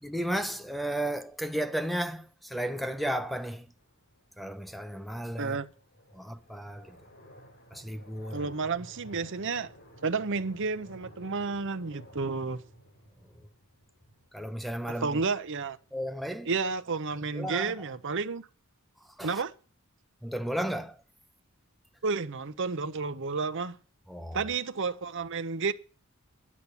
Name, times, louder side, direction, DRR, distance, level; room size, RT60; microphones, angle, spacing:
voice 1, 0.0-3.7 4.4-5.6 6.1-7.0 7.7-8.5 14.3-15.2 15.9-16.5 17.3-17.7 19.2-19.4 20.2-21.0 24.1-24.5, right 1 dB, ahead, 0.7 m, -34 dB
sound 1, 3.8-17.7, equal, 60° left, 5.5 m, -54 dB
voice 2, 8.3-9.7 10.0-12.6 15.0-15.8 16.5-18.4 19.2-19.5 22.0-23.8 24.3-25.7, right 4 dB, 60° right, 0.8 m, -31 dB
11.5 x 8.5 x 8.2 m
head